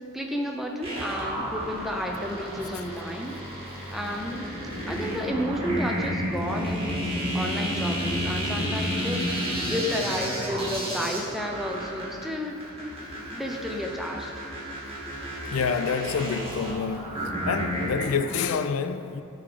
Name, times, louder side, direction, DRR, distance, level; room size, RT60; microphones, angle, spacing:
voice 1, 0.1-3.4 3.9-4.5 4.9-7.0 7.3-12.6 13.3-14.3, equal, ahead, 0.5 m, -32 dB
sound 1, 0.8-18.3, equal, 25° right, 1.9 m, -31 dB
voice 2, 15.5-19.2, left 6 dB, 75° left, 0.4 m, -28 dB
11.0 x 3.9 x 4.8 m
head